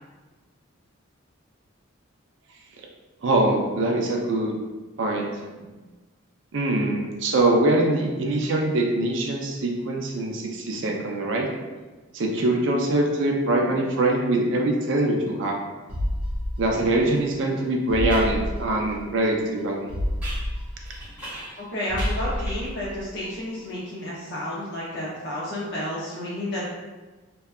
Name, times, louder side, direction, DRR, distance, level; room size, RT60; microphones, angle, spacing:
voice 1, 3.2-4.5 5.0-5.3 6.5-11.5 12.1-15.6 16.6-19.9, right 2 dB, 60° right, 1 dB, 0.4 m, -23 dB
sound 1, 15.9-17.3 17.6-17.7 17.9-19.3 19.6-19.7 19.9-21.6 21.9-23.3 23.6-23.7, left 1 dB, 80° right, 0.8 m, -30 dB
sound 2, 17.1-17.2 18.1-18.4 20.2-21.7 22.0-22.8, right 1 dB, 5° right, 0.9 m, -39 dB
voice 2, 21.6-26.7, left 1 dB, 50° left, -8 dB, 0.5 m, -31 dB
2.7 x 2.2 x 2.3 m, 1.2 s
head